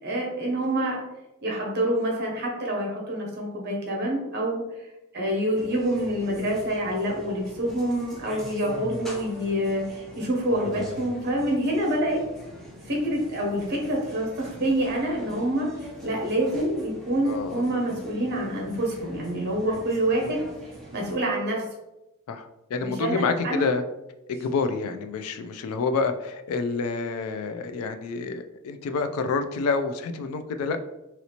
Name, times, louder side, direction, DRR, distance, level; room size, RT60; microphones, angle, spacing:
voice 1, 0.0-1.0 1.4-4.6 5.1-12.2 12.9-15.7 16.0-20.4 20.9-21.6 22.8-23.6, right 1 dB, 50° right, -2 dB, 0.9 m, -26 dB
sound 1, 5.5-21.1, equal, ahead, 0.6 m, -43 dB
voice 2, 17.2-17.7 19.7-19.8 20.2-20.3 22.3-23.8 24.3-30.8, left 4 dB, 75° left, 8 dB, 0.3 m, -28 dB
3.0 x 2.8 x 2.9 m, 0.96 s
head